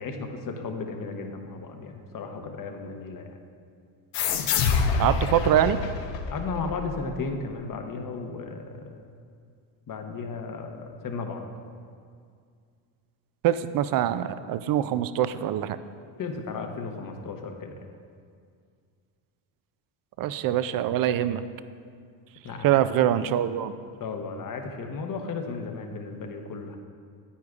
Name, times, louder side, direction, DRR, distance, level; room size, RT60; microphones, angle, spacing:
voice 1, 0.0-3.4 6.3-9.0 9.9-11.4 16.2-17.7 22.4-22.8 24.0-26.8, left 4 dB, 45° left, 4 dB, 1.0 m, -35 dB
sound 1, 4.1-7.3, left 5 dB, 70° left, 0.8 m, -27 dB
voice 2, 5.0-5.8 13.4-15.8 20.2-21.4 22.6-23.7, right 11 dB, 50° right, 13 dB, 0.4 m, -24 dB
9.8 x 9.1 x 2.4 m, 2.2 s
cardioid pair, 95°, 46 cm